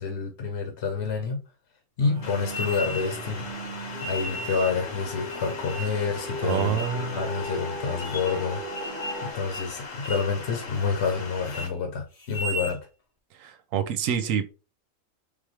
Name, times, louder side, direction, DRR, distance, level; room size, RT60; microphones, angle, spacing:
voice 1, 0.0-1.4 2.0-3.5 4.0-8.6 9.2-12.8, left 5 dB, 60° left, 1.1 m, -28 dB
sound 1, 2.0-9.3, equal, 45° right, 1.0 m, -38 dB
sound 2, 2.2-11.7, left 4 dB, 75° left, 1.3 m, -39 dB
sound 3, 2.5-3.3 4.0-4.8 5.3-6.0 6.5-7.0 7.4-7.5 8.0-8.4 8.7-9.3 9.5-9.7 10.0-10.3 10.7-11.2 11.4-11.7 12.2-12.8, equal, 35° left, 0.7 m, -36 dB
voice 2, 6.4-7.2 13.4-14.5, right 8 dB, 85° right, 1.0 m, -27 dB
4.0 x 3.5 x 3.2 m
omnidirectional pair, 1.4 m